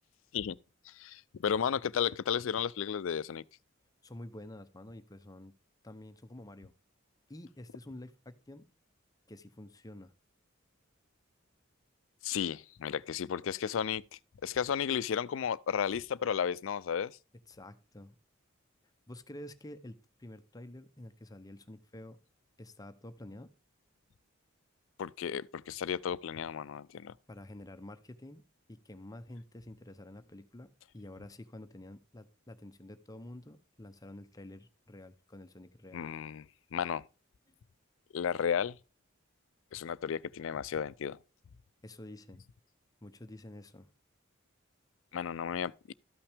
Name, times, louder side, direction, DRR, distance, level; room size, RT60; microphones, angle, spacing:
voice 1, 0.9-3.4 12.2-17.1 25.0-27.1 35.9-36.4 36.7-37.0 38.1-38.8 39.7-41.2 45.1-45.9, left 8 dB, 70° left, 0.4 m, -33 dB
voice 2, 4.0-5.5 5.8-6.7 7.3-8.7 9.3-10.1 17.5-18.2 19.1-22.2 22.6-23.5 27.3-36.0 41.8-42.4 43.0-43.9, left 1 dB, 20° left, 0.6 m, -49 dB
13.0 x 5.8 x 3.4 m
head